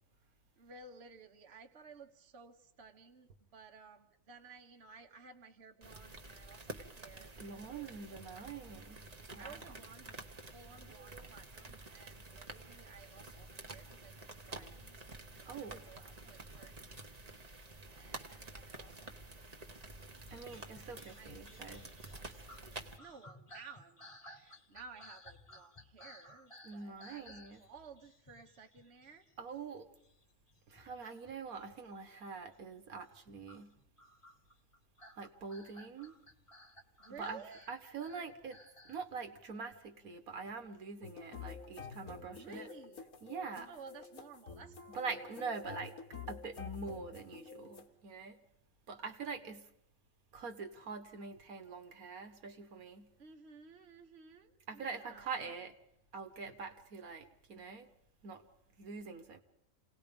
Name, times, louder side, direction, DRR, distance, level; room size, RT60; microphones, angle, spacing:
voice 1, 0.6-8.2 9.4-15.0 15.4-19.6 20.5-29.3 37.0-37.7 42.3-43.1 43.7-45.1 53.2-55.5, right 4 dB, 50° right, 1.5 m, -56 dB
sound 1, 5.8-23.0, right 2 dB, 30° right, 1.2 m, -50 dB
voice 2, 7.4-9.1 9.3-9.6 10.9-11.3 15.5-15.9 20.3-21.9 26.6-27.6 29.4-29.9 30.7-33.8 35.2-36.1 37.2-37.4 37.7-42.7 43.2-43.7 44.9-46.0 46.3-48.4 48.9-49.7 50.3-53.1 54.7-55.7 56.1-57.9 58.2-58.4 58.8-59.4, right 5 dB, 80° right, 1.8 m, -44 dB
sound 2, 20.3-29.7 30.0-31.7 32.0-32.4 33.0-39.0, left 1 dB, 25° left, 1.3 m, -58 dB
sound 3, 41.0-47.9, left 6 dB, 85° left, 1.9 m, -49 dB
28.0 x 18.5 x 5.2 m
omnidirectional pair, 1.5 m